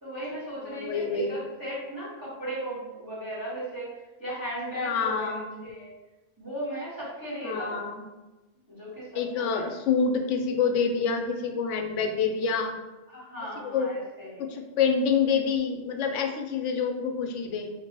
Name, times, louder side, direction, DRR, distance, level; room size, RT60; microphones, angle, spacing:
voice 1, 0.0-5.3 5.6-5.9 6.4-7.8 8.7-9.7 13.1-14.5, right 1 dB, 15° right, -10 dB, 1.5 m, -36 dB
voice 2, 0.7-1.4 4.8-5.6 7.4-8.0 9.1-12.7 13.7-13.9 14.4-17.7, left 5 dB, 80° left, 5 dB, 0.9 m, -27 dB
4.4 x 3.2 x 2.9 m, 1.1 s
omnidirectional pair, 1.2 m